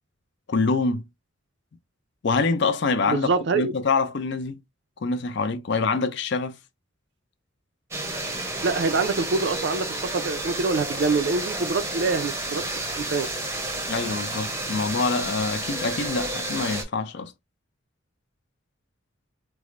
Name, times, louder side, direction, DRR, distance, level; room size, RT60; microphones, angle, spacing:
voice 1, 0.5-1.1 2.2-3.3 3.5-4.6 5.0-6.6 13.9-17.3, left 4 dB, 55° left, 0.5 m, -25 dB
voice 2, 3.1-3.7 8.6-12.6 13.0-13.3, right 4 dB, 60° right, 0.4 m, -25 dB
sound 1, 7.9-16.8, right 2 dB, 15° right, 0.6 m, -31 dB
4.7 x 2.0 x 2.5 m
head